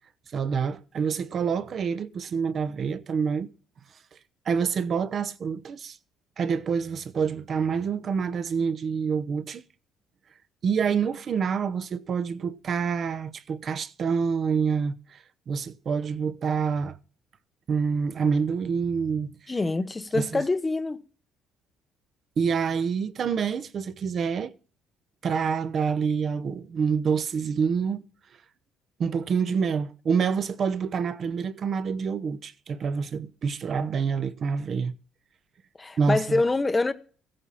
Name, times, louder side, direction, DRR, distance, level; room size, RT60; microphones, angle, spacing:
voice 1, 0.3-3.5 4.5-6.0 6.4-9.6 10.6-17.0 17.7-19.3 20.1-20.4 22.4-24.5 25.2-28.0 29.0-35.0 36.0-36.4, right 6 dB, 35° right, 0.9 m, -27 dB
voice 2, 19.5-21.0 35.8-36.9, left 3 dB, 15° left, 0.9 m, -25 dB
16.0 x 8.8 x 5.6 m
cardioid pair, 165°, 0 cm